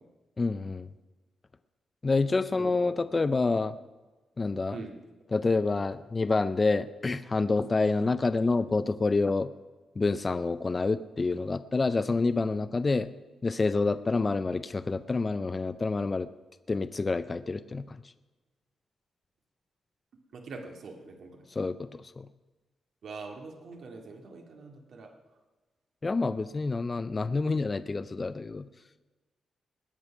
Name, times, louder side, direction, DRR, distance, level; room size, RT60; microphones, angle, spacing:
voice 1, 0.4-0.9 2.0-3.8 4.4-4.8 5.3-9.5 10.0-13.1 13.4-16.3 16.7-18.0 21.5-22.3 26.0-28.7, left 3 dB, 20° left, 12 dB, 0.4 m, -28 dB
voice 2, 2.5-3.1 4.7-5.0 20.3-21.5 23.0-25.1, right 4 dB, 60° right, 2 dB, 2.1 m, -43 dB
20.0 x 8.4 x 5.9 m, 1.2 s
wide cardioid pair, 165°, 0 cm